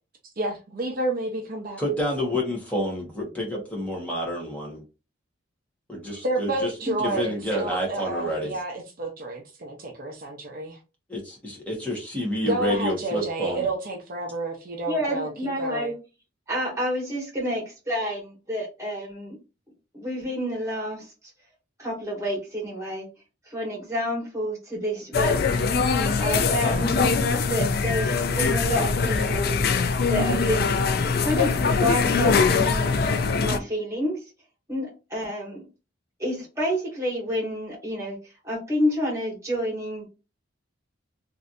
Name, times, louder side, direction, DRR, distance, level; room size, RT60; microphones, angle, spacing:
voice 1, 0.4-1.8 6.2-10.8 12.5-15.3 15.6-15.9, right 2 dB, 45° right, 0.6 m, -30 dB
voice 2, 1.8-4.8 5.9-6.7 7.0-8.6 11.1-13.7, equal, 5° left, 1.2 m, -29 dB
voice 3, 6.8-7.2 14.9-15.9 16.5-19.4 19.9-21.1 21.8-23.1 23.5-25.6 26.2-27.0 27.4-29.6 30.0-30.7 31.2-32.9 33.4-34.3 34.7-35.6 36.2-38.2 38.4-40.1, equal, 15° right, 1.5 m, -29 dB
sound 1, 25.1-33.6, left 4 dB, 50° left, 0.3 m, -22 dB
3.2 x 2.7 x 2.5 m
head